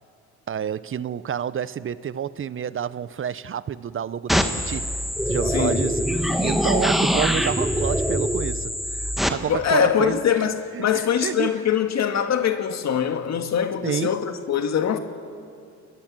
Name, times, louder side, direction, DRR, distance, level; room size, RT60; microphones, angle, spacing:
voice 1, 0.5-4.9 5.3-6.1 6.4-11.5 13.8-14.2, right 8 dB, 45° right, 0.8 m, -29 dB
sound 1, 4.3-9.3, equal, ahead, 1.9 m, -23 dB
voice 2, 5.5-5.9 9.5-15.0, left 8 dB, 60° left, 2.1 m, -23 dB
29.5 x 21.0 x 7.7 m
cardioid pair, 90°, 30 cm